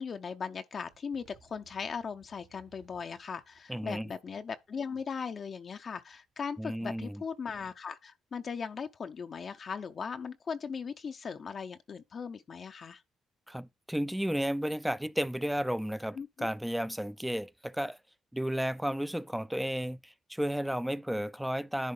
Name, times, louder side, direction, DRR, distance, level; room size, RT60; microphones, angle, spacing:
voice 1, 0.0-13.0 16.2-16.5, left 6 dB, 45° left, 0.6 m, -38 dB
sound 1, 0.9-5.0 5.8-6.6 6.9-7.8, right 6 dB, 70° right, 1.6 m, -65 dB
voice 2, 3.7-4.1 6.6-7.2 13.5-18.0 18.3-21.9, equal, 5° right, 0.4 m, -33 dB
10.5 x 3.6 x 5.4 m
cardioid pair, 90°, 0 cm